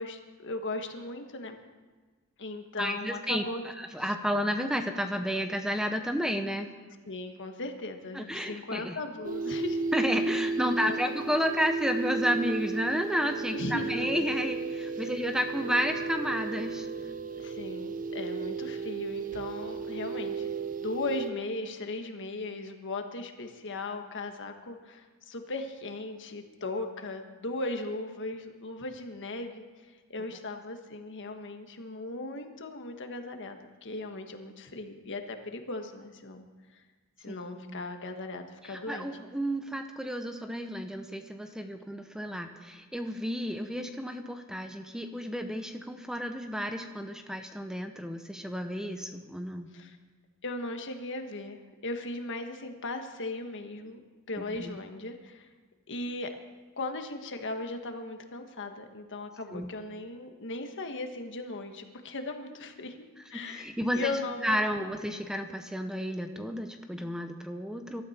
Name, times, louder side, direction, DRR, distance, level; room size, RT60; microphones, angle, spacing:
voice 1, 0.0-1.6 2.4-3.6 7.1-9.8 10.6-11.0 13.5-14.2 15.0-15.1 17.4-20.5 20.8-29.6 30.1-36.5 36.7-36.8 37.2-39.1 49.7-50.0 50.4-54.0 54.3-55.5 55.9-56.3 56.8-64.6, left 2 dB, 55° left, 6 dB, 1.5 m, -37 dB
voice 2, 2.8-3.4 3.8-6.7 8.1-9.0 9.9-16.9 37.3-37.8 38.6-49.7 54.6-54.8 59.5-59.7 63.3-64.1 64.4-68.0, equal, 5° right, 6 dB, 0.8 m, -32 dB
sound 1, 9.2-21.3, right 4 dB, 40° right, 0.7 m, -34 dB
23.0 x 13.0 x 4.4 m, 1.4 s
head